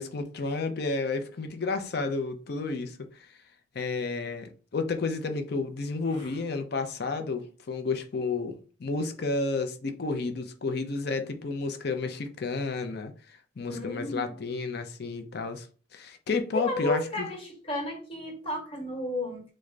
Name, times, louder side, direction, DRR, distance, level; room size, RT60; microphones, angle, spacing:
voice 1, 0.0-3.3 3.7-15.7 15.9-17.3, left 3 dB, 55° left, 0.5 m, -31 dB
voice 2, 13.7-14.3 16.5-19.4, left 1 dB, 30° left, 1.2 m, -33 dB
3.7 x 2.1 x 3.2 m
head